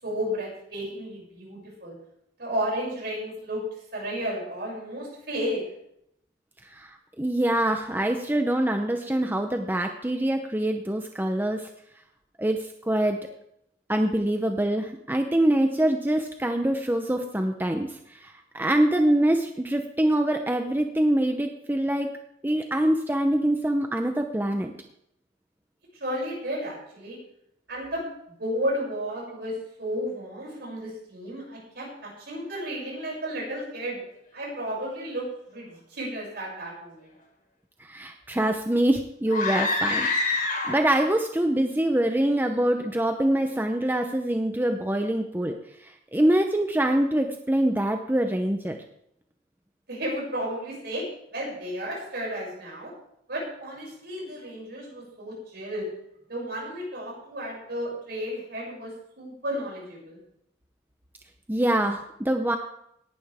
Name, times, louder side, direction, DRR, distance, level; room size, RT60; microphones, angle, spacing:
voice 1, 0.0-1.9 2.4-5.6 25.9-27.2 27.7-34.0 34.3-37.1 49.9-52.9 53.3-55.9 56.3-60.2, equal, 60° right, -3 dB, 7.0 m, -33 dB
voice 2, 6.7-11.7 12.4-13.2 13.9-22.1 22.4-24.7 37.8-45.6 45.8-48.8 61.5-62.6, right 1 dB, 10° right, 5 dB, 0.7 m, -25 dB
sound 1, 39.3-41.1, left 3 dB, 50° left, 3.9 m, -26 dB
18.0 x 11.5 x 3.6 m, 0.75 s
head